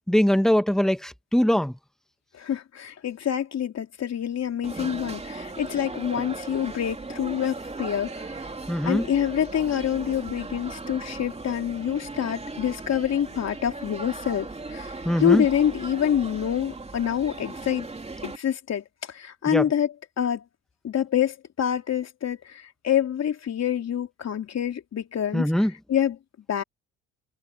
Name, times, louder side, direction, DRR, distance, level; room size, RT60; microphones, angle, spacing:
voice 1, 0.1-1.7 8.7-9.0 15.1-15.5 19.5-19.7 25.3-25.7, equal, ahead, 1.6 m, -22 dB
voice 2, 2.3-8.5 8.9-17.9 18.2-20.4 20.8-25.5 25.9-26.2 26.5-26.6, left 9 dB, 55° left, 3.3 m, -26 dB
sound 1, 4.6-18.4, right 3 dB, 20° right, 3.0 m, -38 dB
supercardioid pair, 75°, 32 cm